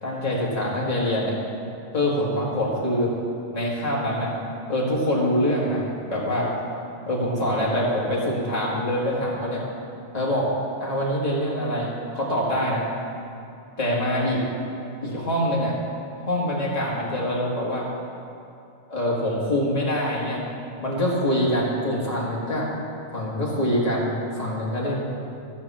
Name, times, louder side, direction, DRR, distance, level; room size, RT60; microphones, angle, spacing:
voice 1, 0.0-1.4 1.9-3.1 3.5-4.3 4.7-6.5 7.1-9.6 10.1-10.5 10.8-12.9 13.8-14.4 15.0-15.7 16.2-17.9 18.9-20.4 20.8-22.7 23.1-25.0, equal, 35° left, -5 dB, 2.0 m, -24 dB
14.0 x 5.6 x 7.3 m, 2.7 s
omnidirectional pair, 1.2 m